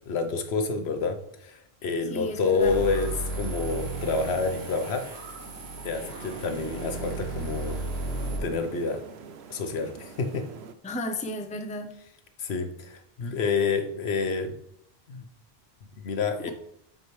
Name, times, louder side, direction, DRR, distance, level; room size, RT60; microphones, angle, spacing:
voice 1, 0.1-5.0 5.8-7.8 8.4-9.0 9.5-10.5 12.4-14.5 15.1-15.2 16.0-16.5, left 4 dB, 80° left, 7 dB, 1.1 m, -28 dB
voice 2, 2.1-2.8 10.8-12.0, left 1 dB, 10° left, 6 dB, 0.4 m, -33 dB
sound 1, 2.2-10.7, right 6 dB, 80° right, 0.9 m, -45 dB
sound 2, 2.6-8.4, right 2 dB, 65° right, 3.1 m, -34 dB
8.0 x 4.8 x 3.2 m, 0.72 s
omnidirectional pair, 1.1 m